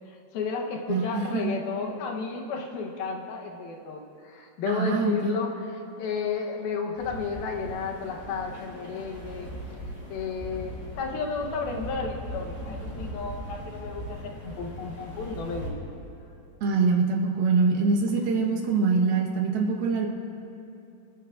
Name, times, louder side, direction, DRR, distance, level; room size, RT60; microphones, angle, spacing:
voice 1, 0.1-9.5 10.1-15.7, left 5 dB, 75° left, 1 dB, 2.7 m, -33 dB
voice 2, 0.9-1.6 4.7-5.4 16.6-20.1, right 4 dB, 75° right, -1 dB, 3.0 m, -24 dB
sound 1, 6.9-15.7, equal, 10° left, 2.6 m, -39 dB
25.0 x 14.0 x 2.5 m, 2.7 s
omnidirectional pair, 4.6 m